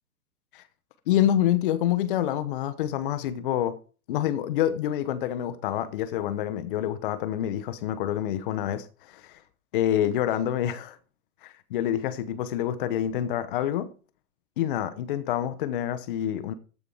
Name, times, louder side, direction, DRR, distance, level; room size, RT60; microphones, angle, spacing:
voice 1, 1.1-3.8 4.1-9.4 9.7-11.0 11.4-13.9 14.6-16.5, left 11 dB, 35° left, 0.7 m, -27 dB
14.0 x 4.9 x 4.7 m
figure-of-eight pair, 110°, 44 cm